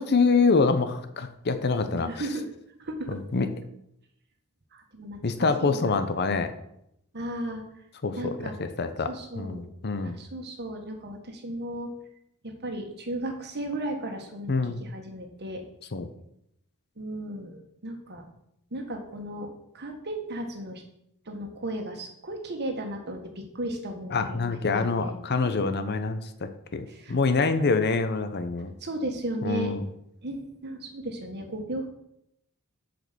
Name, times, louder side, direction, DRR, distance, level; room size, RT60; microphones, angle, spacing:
voice 1, 0.0-2.2 3.1-3.5 5.2-6.5 8.0-10.2 14.5-14.8 15.9-16.1 24.1-28.7 29.4-29.9, left 4 dB, 45° left, 10 dB, 0.7 m, -26 dB
voice 2, 1.9-2.5 2.8-3.2 4.7-5.9 7.1-7.6 8.1-8.5 9.1-9.7 10.0-11.9 12.4-15.6 17.0-18.3 18.7-20.8 21.2-25.6 26.9-27.4 28.8-29.7 30.2-31.9, right 1 dB, 50° right, 4 dB, 1.5 m, -35 dB
7.5 x 5.2 x 6.8 m, 0.78 s
head